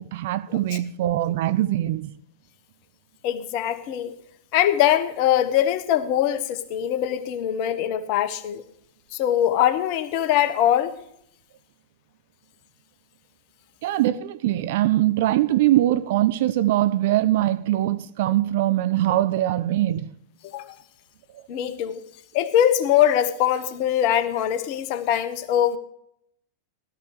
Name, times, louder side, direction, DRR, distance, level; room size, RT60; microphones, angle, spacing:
voice 1, 0.0-2.1 13.8-20.1, right 14 dB, 50° right, 0.6 m, -22 dB
voice 2, 3.2-4.1 4.5-8.6 9.1-10.9 20.5-20.6 21.5-22.0 22.3-25.8, left 11 dB, 45° left, 1.1 m, -22 dB
17.0 x 12.5 x 3.2 m
figure-of-eight pair, 90°, 0 cm